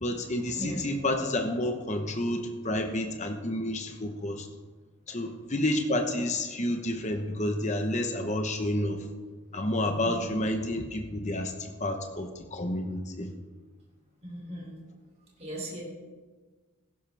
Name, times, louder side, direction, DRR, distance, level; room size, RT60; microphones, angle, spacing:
voice 1, 0.0-4.5 5.1-9.0 9.5-13.3, left 1 dB, 30° left, 5 dB, 1.1 m, -30 dB
voice 2, 14.2-14.7 15.4-15.8, right 1 dB, 30° right, -2 dB, 3.1 m, -37 dB
15.5 x 12.5 x 3.5 m, 1.4 s
head